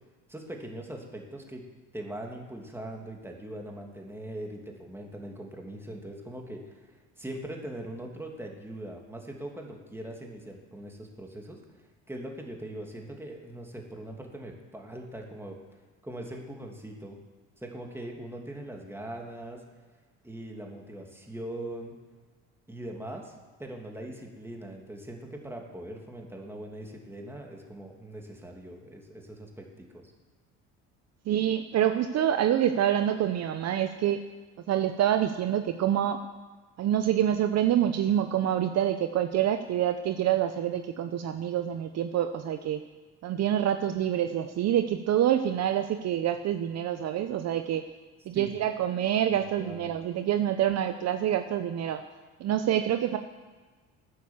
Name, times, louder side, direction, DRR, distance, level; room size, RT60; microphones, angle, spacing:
voice 1, 0.3-1.6 1.9-6.9 7.2-11.6 12.1-15.6 16.0-17.2 17.6-19.6 20.2-21.9 22.7-23.3 23.6-30.1 48.3-48.5 49.3-50.0, right 1 dB, 5° right, 1 dB, 2.6 m, -41 dB
voice 2, 31.3-34.2 34.7-36.2 36.8-42.8 43.2-47.8 48.3-52.0 52.4-53.2, right 10 dB, 50° right, 8 dB, 0.8 m, -26 dB
12.5 x 9.5 x 7.2 m, 1.4 s
supercardioid pair, 95°, 34 cm